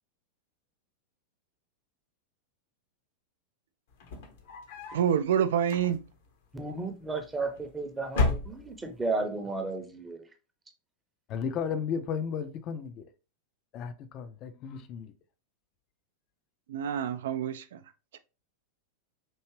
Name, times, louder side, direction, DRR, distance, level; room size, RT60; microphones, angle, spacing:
sound 1, 3.9-5.1 5.6-6.3 7.2-7.7 8.1-9.0, left 3 dB, 55° left, 0.8 m, -32 dB
voice 1, 4.9-6.0 16.7-17.8, right 9 dB, 60° right, 0.3 m, -27 dB
voice 2, 6.5-10.2, right 3 dB, 10° right, 0.7 m, -33 dB
voice 3, 11.3-13.0 13.7-15.1, left 7 dB, 35° left, 0.5 m, -34 dB
4.6 x 2.8 x 3.0 m
figure-of-eight pair, 90°, 0 cm